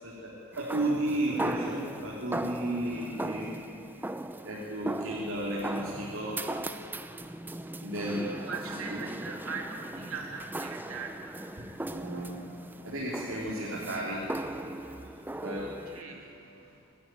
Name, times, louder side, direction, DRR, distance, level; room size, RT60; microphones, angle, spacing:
voice 1, 0.0-3.6 4.4-6.5 7.8-8.3 11.6-12.3 12.8-14.6 15.4-15.6, right 1 dB, 65° right, -5 dB, 3.6 m, -33 dB
sound 1, 0.5-16.0, right 1 dB, 10° right, 0.6 m, -38 dB
voice 2, 8.2-11.4 15.6-16.3, right 4 dB, 80° right, 1 dB, 3.0 m, -41 dB
26.5 x 13.0 x 9.4 m, 2.7 s
head